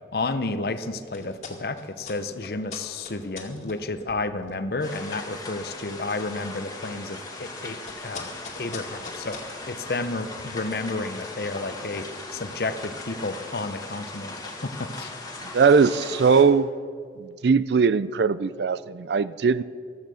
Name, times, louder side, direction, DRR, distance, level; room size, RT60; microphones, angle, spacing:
voice 1, 0.1-8.3 8.6-9.4 9.7-12.0 12.3-14.3 14.8-15.1, left 3 dB, 60° left, 9 dB, 0.7 m, -31 dB
sound 1, 0.7-12.8, left 4 dB, 40° left, 2.2 m, -46 dB
sound 2, 4.8-16.4, left 2 dB, 20° left, 2.1 m, -39 dB
voice 2, 15.5-16.7 17.2-19.6, right 5 dB, 75° right, 16 dB, 0.4 m, -20 dB
15.5 x 12.0 x 6.3 m, 2.1 s
head